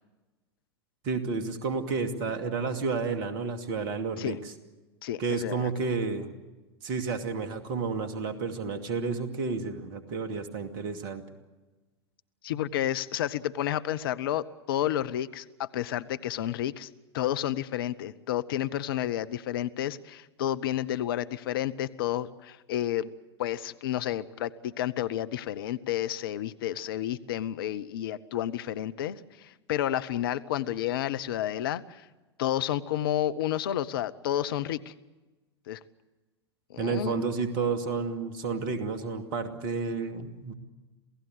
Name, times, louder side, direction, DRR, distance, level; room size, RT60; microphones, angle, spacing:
voice 1, 1.0-4.5 5.2-6.3 6.8-11.2 12.5-12.6 36.8-40.5, right 4 dB, 45° right, 7 dB, 2.4 m, -31 dB
voice 2, 5.0-5.7 12.4-23.1 23.4-32.1 32.4-34.9 35.7-35.8 36.7-37.2, left 12 dB, 60° left, 15 dB, 0.8 m, -31 dB
28.0 x 17.0 x 8.0 m, 1.2 s
figure-of-eight pair, 90°, 14 cm